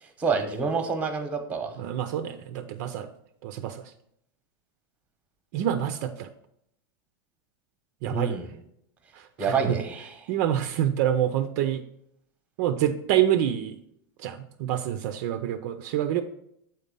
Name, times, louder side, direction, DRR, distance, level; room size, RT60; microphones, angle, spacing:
voice 1, 0.0-1.7 8.0-8.5 9.4-10.2, right 5 dB, 10° right, 7 dB, 0.9 m, -28 dB
voice 2, 1.8-3.1 3.4-3.9 5.5-6.3 8.0-8.4 9.2-9.8 10.3-11.8 12.6-13.8 14.2-16.2, right 11 dB, 50° right, 9 dB, 0.5 m, -27 dB
7.8 x 4.1 x 5.2 m, 0.73 s
supercardioid pair, 155°, 12 cm